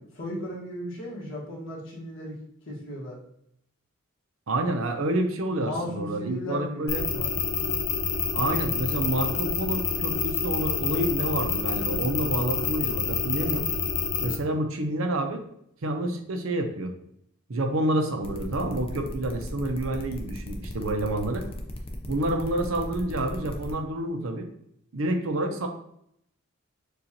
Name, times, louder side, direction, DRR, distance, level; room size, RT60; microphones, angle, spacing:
voice 1, 0.2-2.4 2.7-3.2 5.5-7.3, left 1 dB, 70° left, -4 dB, 1.4 m, -35 dB
voice 2, 4.5-7.0 8.3-13.7 14.2-15.4 15.8-16.9 17.5-21.5 22.1-24.5 24.9-25.7, right 1 dB, 80° right, 5 dB, 0.7 m, -28 dB
sound 1, 6.9-14.4, left 5 dB, 85° left, 0.6 m, -28 dB
sound 2, 18.2-23.7, left 1 dB, 25° left, 0.5 m, -37 dB
6.7 x 2.4 x 2.8 m, 0.72 s
head